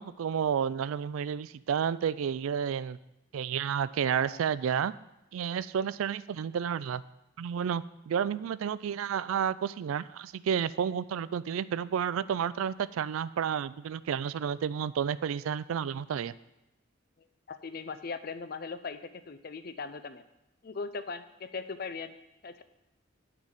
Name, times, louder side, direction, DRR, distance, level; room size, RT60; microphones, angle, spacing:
voice 1, 0.0-3.0 3.3-4.9 5.3-7.0 7.4-16.3, right 8 dB, 90° right, 17 dB, 0.3 m, -31 dB
voice 2, 17.5-20.2 20.6-22.1 22.4-22.6, left 4 dB, 50° left, 11 dB, 0.5 m, -39 dB
10.5 x 4.0 x 7.3 m, 0.91 s
head